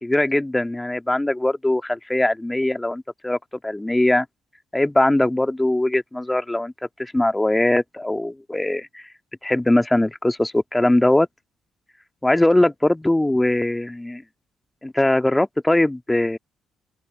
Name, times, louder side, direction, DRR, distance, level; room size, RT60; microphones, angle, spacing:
voice 1, 0.0-3.4 3.6-4.2 4.7-6.7 7.0-9.0 9.4-11.3 12.2-14.2 14.8-16.4, left 1 dB, 10° left, 1.9 m, -21 dB
open air
figure-of-eight pair, 40°, 0 cm